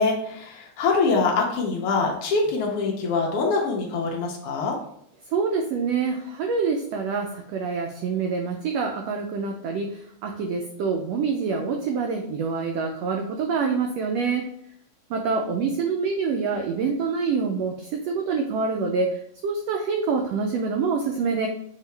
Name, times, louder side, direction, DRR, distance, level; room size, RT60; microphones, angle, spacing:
voice 1, 0.0-4.8, left 4 dB, 80° left, 0 dB, 1.3 m, -24 dB
voice 2, 5.3-14.5 15.1-21.5, right 5 dB, 85° right, 3 dB, 1.4 m, -26 dB
5.7 x 2.8 x 3.2 m, 0.69 s
omnidirectional pair, 3.4 m